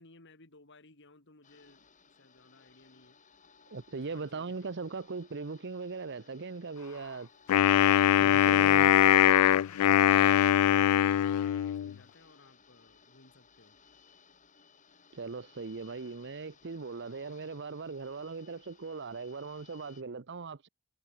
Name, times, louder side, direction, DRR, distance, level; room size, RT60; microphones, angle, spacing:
voice 1, 0.0-1.9 2.2-3.2 3.9-4.5 8.2-13.8, left 2 dB, 55° left, 3.5 m, -56 dB
sound 1, 1.4-20.0, left 5 dB, 35° left, 4.7 m, -61 dB
voice 2, 3.7-7.3 8.2-8.9 15.1-20.7, right 4 dB, 50° right, 0.8 m, -39 dB
Wind instrument woodwind instrument, 7.5-11.9, left 11 dB, 90° left, 0.3 m, -22 dB
head